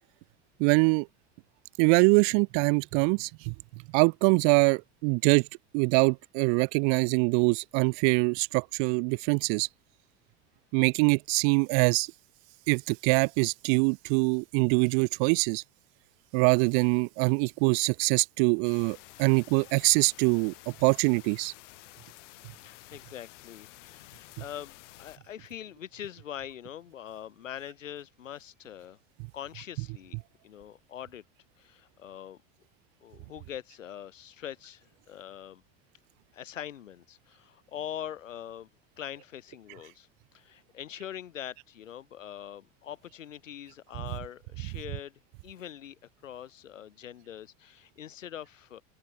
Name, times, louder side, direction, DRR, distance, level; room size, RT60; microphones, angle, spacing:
voice 1, 0.6-1.1 1.8-3.5 3.9-5.5 5.7-9.7 10.7-12.1 12.7-15.6 16.3-21.5, right 40 dB or more, 50° right, 0.4 m, -24 dB
sound 1, 18.6-25.2, left 20 dB, 70° left, 3.2 m, -51 dB
voice 2, 22.6-29.0 29.3-30.2 30.4-31.2 31.6-32.4 33.0-35.6 36.3-38.7 39.0-40.1 40.3-45.1 45.4-48.8, left 10 dB, 85° left, 3.8 m, -43 dB
hypercardioid pair, 85°, 37 cm